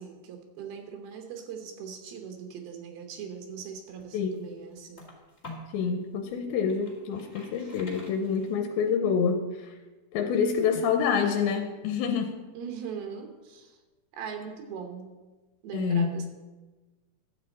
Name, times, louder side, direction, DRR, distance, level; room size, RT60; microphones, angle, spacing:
voice 1, 0.0-5.0 7.6-7.7 12.5-13.8 14.1-15.1 15.6-16.3, right 7 dB, 80° right, 3 dB, 3.0 m, -40 dB
sound 1, 3.7-5.8 6.3-8.8, left 2 dB, 20° left, 1.1 m, -48 dB
voice 2, 5.7-9.7 10.1-12.3 15.7-16.1, left 6 dB, 85° left, 4 dB, 2.5 m, -27 dB
12.5 x 7.7 x 4.1 m, 1.2 s
omnidirectional pair, 4.4 m